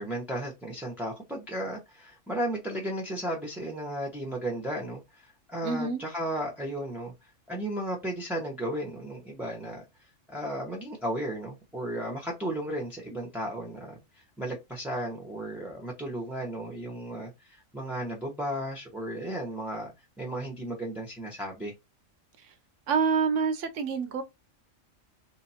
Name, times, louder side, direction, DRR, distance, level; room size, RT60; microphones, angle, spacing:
voice 1, 0.0-7.1 7.5-9.8 10.3-19.9 20.2-21.7, right 1 dB, ahead, 1.0 m, -34 dB
voice 2, 5.6-6.0 22.9-24.2, right 5 dB, 70° right, 1.0 m, -27 dB
3.4 x 2.9 x 4.2 m
omnidirectional pair, 1.4 m